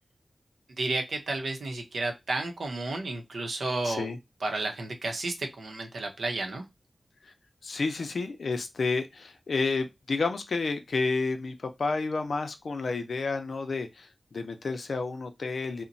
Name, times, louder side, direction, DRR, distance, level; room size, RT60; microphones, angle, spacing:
voice 1, 0.8-4.1 4.4-6.6, right 2 dB, 85° right, 0.7 m, -32 dB
voice 2, 3.8-4.2 7.2-7.3 7.6-15.8, left 3 dB, 80° left, 0.5 m, -30 dB
2.9 x 2.1 x 2.5 m
cardioid pair, 55°, 0 cm